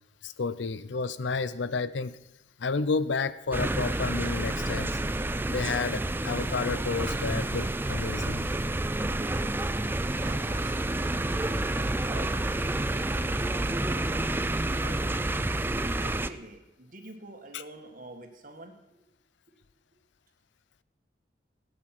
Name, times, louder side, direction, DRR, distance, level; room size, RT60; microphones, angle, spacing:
voice 1, 0.2-2.2 2.6-5.0 5.5-8.5 17.5-17.6, left 4 dB, 85° left, 0.6 m, -31 dB
sound 1, 3.5-16.3, right 1 dB, 10° right, 0.4 m, -29 dB
voice 2, 10.2-11.2 11.6-14.3 14.8-19.0, right 2 dB, 50° right, 1.7 m, -47 dB
17.5 x 8.7 x 5.9 m
head